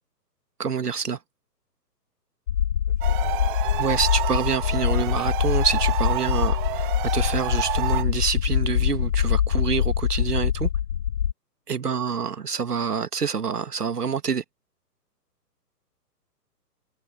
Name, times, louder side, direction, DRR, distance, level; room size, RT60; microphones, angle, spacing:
voice 1, 0.6-1.2 3.8-10.7 11.7-14.4, right 6 dB, 70° right, 2.0 m, -27 dB
sound 1, 2.5-11.3, left 9 dB, 50° left, 0.7 m, -24 dB
voice 2, 2.9-4.2 11.8-12.1, left 10 dB, 15° left, 5.4 m, -50 dB
sound 2, 3.0-8.0, right 15 dB, 30° right, 1.7 m, -30 dB
sound 3, 3.9-9.2, right 5 dB, 5° right, 6.8 m, -58 dB
figure-of-eight pair, 130°, 49 cm